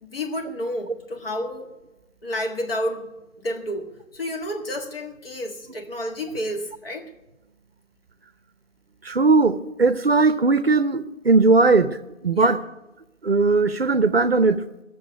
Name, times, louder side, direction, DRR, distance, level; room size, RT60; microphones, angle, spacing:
voice 1, 0.0-1.7 2.2-7.1 12.3-12.6, equal, 45° left, 1.9 m, -30 dB
voice 2, 9.0-12.0 12.2-12.6 13.2-14.6, right 3 dB, 50° right, 0.7 m, -18 dB
15.5 x 7.1 x 8.2 m
figure-of-eight pair, 150°, 40 cm